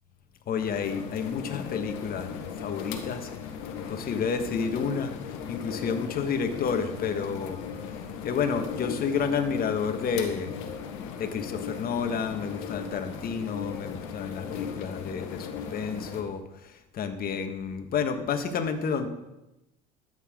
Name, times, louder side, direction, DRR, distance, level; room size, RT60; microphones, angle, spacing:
voice 1, 0.5-2.3 2.6-3.3 3.9-10.6 11.2-19.1, left 6 dB, 45° left, 7 dB, 1.5 m, -30 dB
sound 1, 0.6-16.2, left 7 dB, 70° left, 1.4 m, -37 dB
13.0 x 8.1 x 3.8 m, 0.94 s
hypercardioid pair, 70°, 21 cm